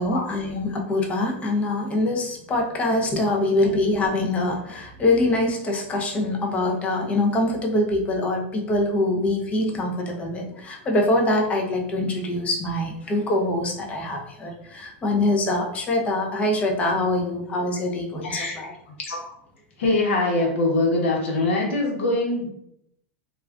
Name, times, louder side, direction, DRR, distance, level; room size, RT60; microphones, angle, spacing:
voice 1, 0.0-18.7, left 2 dB, 20° left, 1 dB, 0.5 m, -24 dB
voice 2, 18.2-18.6 19.1-19.2 19.8-22.5, left 2 dB, 85° left, 0 dB, 0.9 m, -23 dB
2.4 x 2.3 x 3.3 m, 0.74 s
supercardioid pair, 140°, 7 cm